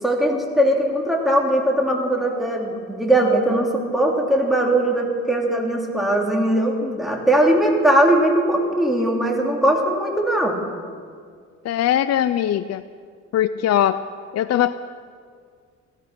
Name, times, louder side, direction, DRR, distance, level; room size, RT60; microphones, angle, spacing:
voice 1, 0.0-10.6, right 1 dB, ahead, -1 dB, 3.0 m, -20 dB
voice 2, 11.6-12.8 13.3-14.0 14.3-14.8, left 11 dB, 60° left, 12 dB, 0.5 m, -20 dB
17.0 x 13.0 x 6.0 m, 2.1 s
cardioid pair, 90°, 30 cm